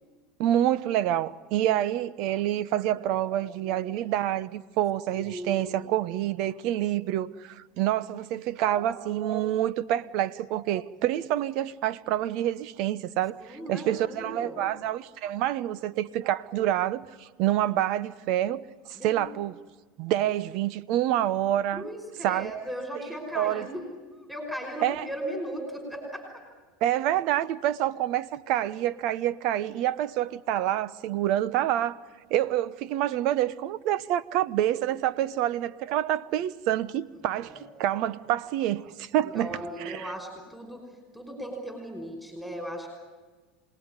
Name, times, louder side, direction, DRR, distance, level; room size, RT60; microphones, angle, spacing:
voice 1, 0.4-18.6 18.9-19.6 20.0-21.8 22.2-22.5 23.3-23.7 24.8-25.1 26.8-32.0 32.3-37.5 37.8-39.6 39.8-40.1, right 12 dB, 60° right, 0.9 m, -27 dB
voice 2, 5.1-5.8 13.4-14.7 19.0-19.3 21.7-23.9 24.3-26.4 37.4-37.7 39.2-40.9 41.1-42.9, equal, ahead, 5.4 m, -37 dB
27.5 x 19.5 x 9.8 m
supercardioid pair, 100°, 0 cm